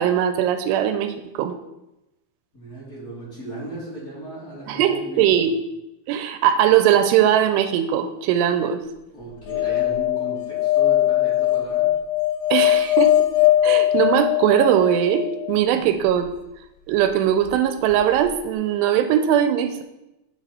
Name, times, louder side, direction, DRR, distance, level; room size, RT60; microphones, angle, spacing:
voice 1, 0.0-1.6 4.7-5.5 6.1-8.8 12.5-13.1 13.6-16.2 16.9-19.8, right 10 dB, 85° right, 9 dB, 2.7 m, -20 dB
voice 2, 2.5-5.5 9.1-11.9 15.7-15.9, equal, 25° left, -8 dB, 2.8 m, -36 dB
sound 1, 9.5-15.6 17.9-18.0 18.2-18.3, left 14 dB, 80° left, 2.7 m, -20 dB
9.3 x 6.1 x 4.2 m, 0.92 s
omnidirectional pair, 4.7 m